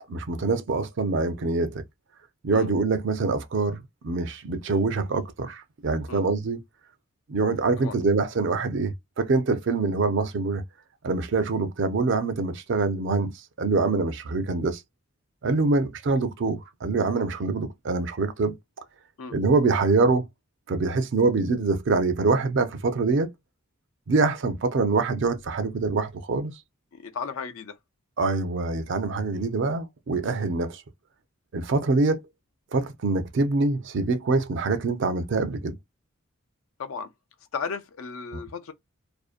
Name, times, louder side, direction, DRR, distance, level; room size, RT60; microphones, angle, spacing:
voice 1, 0.1-1.8 2.4-6.6 7.3-10.6 11.0-13.3 13.6-14.8 15.4-18.6 19.3-20.3 20.7-23.3 24.1-26.5 28.2-30.8 31.5-32.2 32.7-35.8 38.3-38.4, right 3 dB, 55° right, 0.4 m, -25 dB
voice 2, 26.9-27.8 36.8-37.1 37.5-38.7, left 5 dB, 75° left, 0.4 m, -35 dB
2.6 x 2.1 x 2.4 m
head